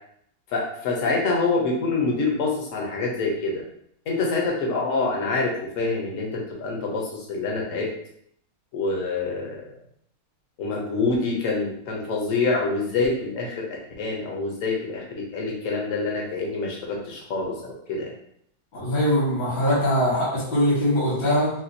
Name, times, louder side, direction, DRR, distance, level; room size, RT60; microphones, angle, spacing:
voice 1, 0.5-3.6 4.1-7.9 8.7-9.6 10.6-13.7 14.0-18.1, left 3 dB, 55° left, -2 dB, 0.9 m, -26 dB
voice 2, 18.7-21.5, equal, 75° left, -8 dB, 2.1 m, -22 dB
4.2 x 2.3 x 2.6 m, 0.70 s
omnidirectional pair, 2.0 m